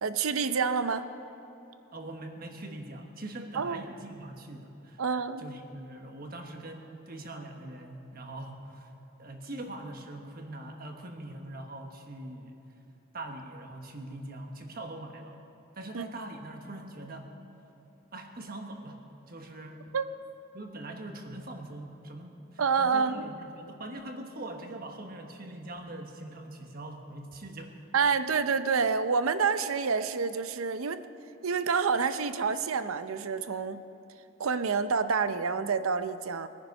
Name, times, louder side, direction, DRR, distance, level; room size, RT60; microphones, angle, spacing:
voice 1, 0.0-1.1 3.6-3.8 5.0-5.4 15.9-16.0 19.9-20.1 22.6-23.3 27.9-31.0 31.4-33.8 34.4-36.5, right 5 dB, 80° right, 12 dB, 0.6 m, -28 dB
voice 2, 1.9-5.0 5.4-8.9 9.2-12.6 13.1-15.4 15.7-17.3 18.1-19.8 20.5-27.7, right 1 dB, 45° right, 4 dB, 1.3 m, -42 dB
20.5 x 10.0 x 5.4 m, 3.0 s
head